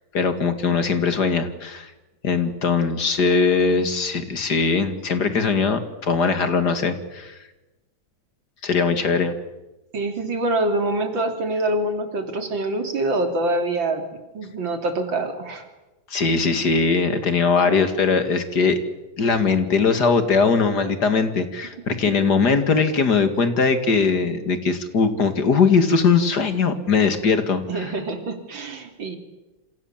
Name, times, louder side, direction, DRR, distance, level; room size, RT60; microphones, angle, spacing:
voice 1, 0.1-1.9 2.2-7.4 8.6-9.3 16.1-18.8 19.2-27.9, left 5 dB, 60° left, 9 dB, 2.6 m, -20 dB
voice 2, 9.9-15.6 27.7-29.2, right 2 dB, 85° right, 6 dB, 3.8 m, -25 dB
28.0 x 26.5 x 7.4 m, 1.1 s
omnidirectional pair, 2.0 m